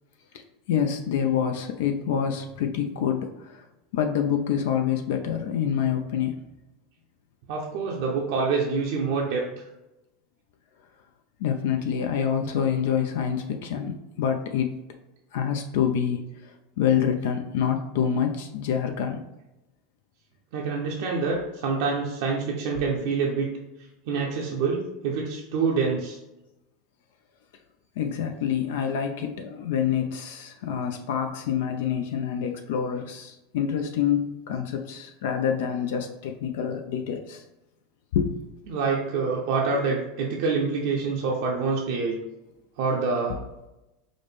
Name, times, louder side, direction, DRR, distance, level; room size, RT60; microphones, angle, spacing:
voice 1, 0.7-3.6 3.9-6.3 11.4-14.7 15.3-16.5 16.8-19.2 28.0-37.4 38.1-38.4, left 8 dB, 70° left, 6 dB, 0.4 m, -26 dB
voice 2, 7.5-9.5 20.5-23.5 24.1-26.2 38.7-42.2 42.8-43.4, right 4 dB, 65° right, -1 dB, 0.5 m, -26 dB
4.9 x 2.1 x 3.2 m, 0.96 s
hypercardioid pair, 85°, 0 cm